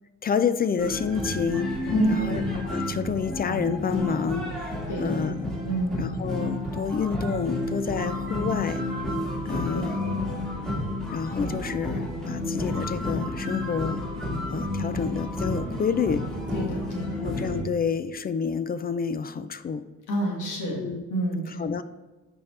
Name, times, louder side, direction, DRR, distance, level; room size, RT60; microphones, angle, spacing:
voice 1, 0.2-5.5 6.0-8.8 9.4-10.0 11.1-14.0 14.5-16.3 17.2-19.9 20.8-21.0 21.6-21.8, left 6 dB, 30° left, 13 dB, 0.4 m, -29 dB
sound 1, 0.8-17.6, left 1 dB, ahead, 1.7 m, -31 dB
voice 2, 1.9-2.3 4.9-5.1 5.7-6.0 9.7-10.1 16.5-17.2 20.1-21.6, right 1 dB, 80° left, -1 dB, 1.9 m, -28 dB
11.5 x 4.4 x 3.3 m, 1.2 s
cardioid pair, 90°, 30 cm